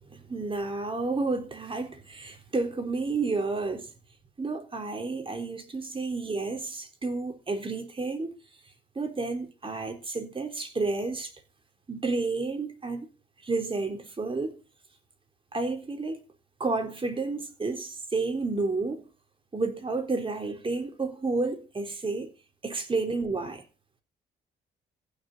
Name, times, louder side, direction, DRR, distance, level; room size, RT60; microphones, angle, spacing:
voice 1, 0.1-3.9 4.4-8.4 9.0-11.3 11.9-13.1 13.4-14.6 15.5-16.2 16.6-19.0 19.5-22.3 22.6-23.6, right 3 dB, 25° right, 3.7 m, -31 dB
15.0 x 6.7 x 8.3 m
cardioid pair, 90°, 20 cm